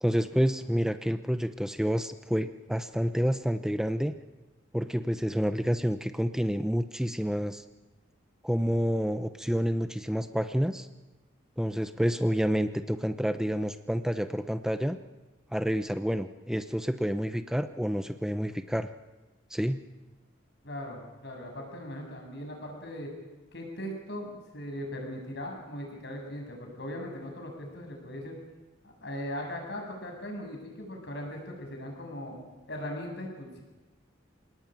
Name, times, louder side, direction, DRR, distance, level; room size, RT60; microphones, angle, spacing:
voice 1, 0.0-4.1 4.7-7.6 8.4-10.9 11.6-15.0 15.5-18.9 19.5-19.8, equal, 5° right, 9 dB, 0.7 m, -28 dB
voice 2, 20.6-23.1 23.5-28.4 28.8-32.4 32.7-33.6, left 1 dB, 60° left, 2 dB, 7.7 m, -39 dB
27.5 x 19.0 x 9.2 m, 1.2 s
head